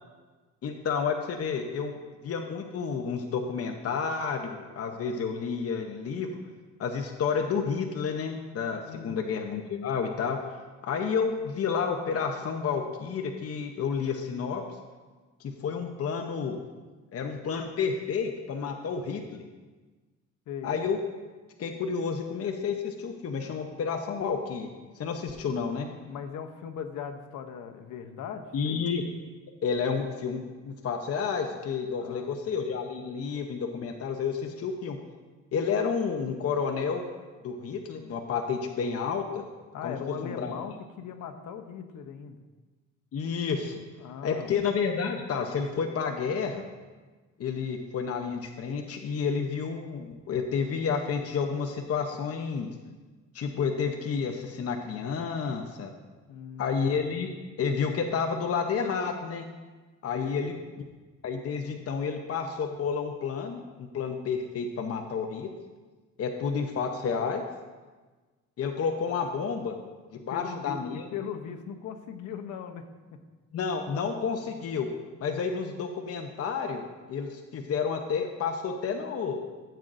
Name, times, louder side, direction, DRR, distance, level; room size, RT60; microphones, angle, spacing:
voice 1, 0.6-6.4 6.8-14.6 15.4-16.6 17.1-19.4 20.6-21.0 21.6-24.7 25.0-25.9 28.5-29.0 29.6-35.0 35.5-37.1 37.4-39.4 39.8-39.9 40.2-40.5 43.1-43.8 44.2-46.6 47.4-52.7 53.3-55.9 56.6-57.3 57.6-59.5 60.0-60.5 61.2-65.5 66.2-67.4 68.6-69.7 70.1-71.1 73.5-74.9 75.2-79.4, left 6 dB, 50° left, 4 dB, 0.9 m, -30 dB
voice 2, 8.9-9.2 20.5-20.7 26.0-28.8 32.0-32.3 39.7-42.4 44.0-44.5 56.3-56.8 60.1-60.4 70.1-72.8, left 7 dB, 80° left, 6 dB, 0.9 m, -39 dB
13.5 x 7.5 x 2.6 m, 1.3 s
cardioid pair, 90°, 30 cm